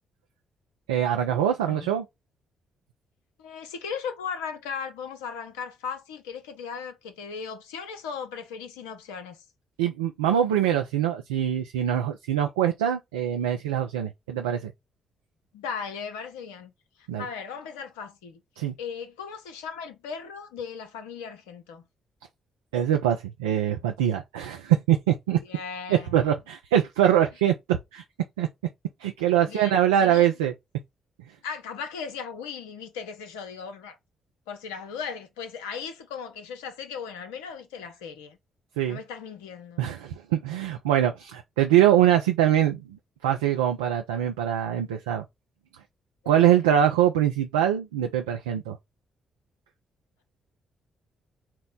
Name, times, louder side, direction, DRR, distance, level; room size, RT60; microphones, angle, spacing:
voice 1, 0.9-2.1 9.8-14.7 17.1-17.2 18.6-18.7 22.7-25.4 25.9-28.0 28.4-28.5 29.0-30.5 38.8-39.0 39.8-45.2 46.3-48.8, right 10 dB, 80° right, 0.3 m, -23 dB
voice 2, 1.6-1.9 3.4-9.4 15.5-16.7 17.0-18.4 18.8-21.8 25.4-26.3 29.4-29.7 30.0-30.3 31.4-34.0 34.5-38.4 38.9-39.8 46.2-46.6, left 6 dB, 80° left, 0.6 m, -37 dB
4.4 x 2.1 x 3.8 m
figure-of-eight pair, 40°, 0 cm